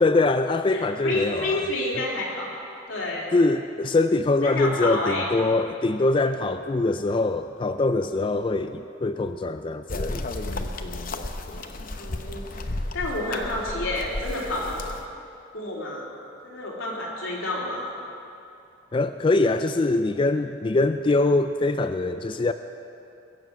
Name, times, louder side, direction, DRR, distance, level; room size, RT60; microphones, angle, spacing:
voice 1, 0.0-1.7 3.3-10.3 18.9-22.5, left 2 dB, 25° left, 9 dB, 0.3 m, -23 dB
voice 2, 0.7-2.5 2.9-3.4 4.4-5.3 12.0-14.8 15.5-16.1 16.4-17.9, left 2 dB, 90° left, -5 dB, 3.7 m, -29 dB
sound 1, 9.9-15.1, left 2 dB, 45° left, 0.8 m, -33 dB
21.5 x 7.3 x 7.8 m, 2.7 s
head